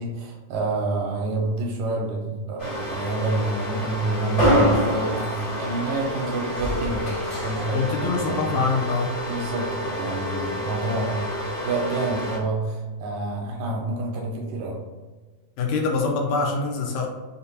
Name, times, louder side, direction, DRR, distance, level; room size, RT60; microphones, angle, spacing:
voice 1, 0.0-8.6 9.2-11.3 11.6-14.8, right 3 dB, 80° right, 0 dB, 1.9 m, -28 dB
sound 1, 2.6-12.4, equal, 50° left, 0.7 m, -27 dB
voice 2, 7.7-9.2 15.6-17.1, left 4 dB, 80° left, 0 dB, 1.9 m, -24 dB
5.2 x 2.1 x 2.8 m, 1.3 s
omnidirectional pair, 3.4 m